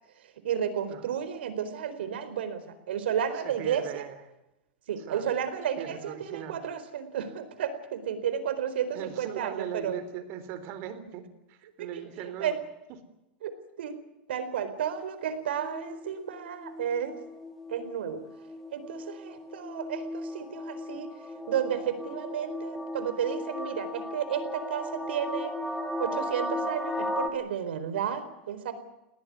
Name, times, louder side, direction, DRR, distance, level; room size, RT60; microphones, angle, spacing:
voice 1, 0.4-2.6 2.9-4.0 4.9-9.9 11.9-12.6 13.4-14.0 14.3-17.2 17.7-18.2 18.7-21.1 21.5-25.5 26.0-28.7, right 8 dB, 90° right, 11 dB, 4.3 m, -32 dB
voice 2, 3.3-4.2 5.0-5.3 5.8-6.6 8.9-12.6, right 9 dB, 45° right, 11 dB, 3.8 m, -39 dB
sound 1, 15.3-27.3, left 1 dB, 5° left, 2.4 m, -36 dB
20.5 x 18.0 x 9.5 m, 0.91 s
supercardioid pair, 150°, 6 cm